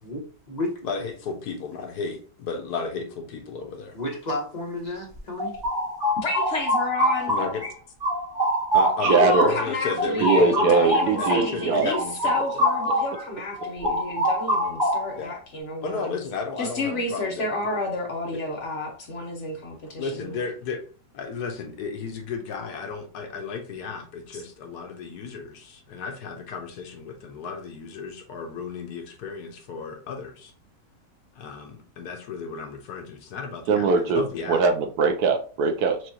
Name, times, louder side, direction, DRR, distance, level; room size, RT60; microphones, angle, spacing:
voice 1, 0.0-0.7 3.9-5.6, left 1 dB, 30° left, 0.9 m, -32 dB
voice 2, 0.8-3.9 7.3-7.6 8.7-12.7 15.1-15.3 15.8-17.8 18.3-18.4 20.0-20.8 21.1-30.5 31.4-34.6, left 5 dB, 70° left, 1.3 m, -33 dB
sound 1, 5.2-7.7 8.0-13.2 13.5-15.3, equal, 15° right, 1.0 m, -25 dB
voice 3, 6.1-7.3 9.0-16.2 16.6-20.3 24.3-24.4, left 2 dB, 50° left, 1.1 m, -31 dB
voice 4, 9.0-9.5 10.2-11.9 33.7-36.1, right 4 dB, 75° right, 1.1 m, -21 dB
6.2 x 2.4 x 2.8 m
omnidirectional pair, 1.8 m